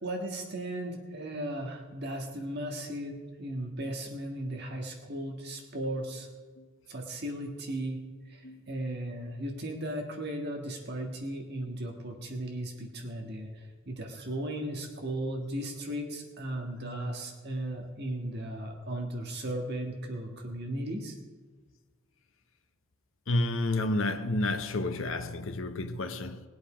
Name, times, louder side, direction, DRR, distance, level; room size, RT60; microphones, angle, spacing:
voice 1, 0.0-3.1 3.4-6.3 6.9-8.0 8.3-21.2, right 1 dB, 50° right, 1.6 m, -36 dB
voice 2, 23.3-26.4, left 2 dB, 65° left, 0.9 m, -30 dB
20.0 x 8.1 x 5.1 m
head